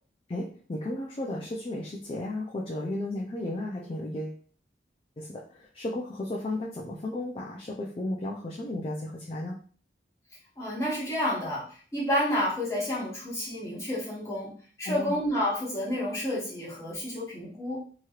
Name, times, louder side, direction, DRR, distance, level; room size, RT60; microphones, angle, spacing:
voice 1, 0.3-4.4 5.2-9.6 14.8-15.2, left 1 dB, 30° left, -2 dB, 0.4 m, -34 dB
voice 2, 10.6-14.5 14.8-17.8, left 1 dB, 15° left, -6 dB, 1.1 m, -30 dB
3.0 x 2.9 x 2.3 m, 0.43 s
head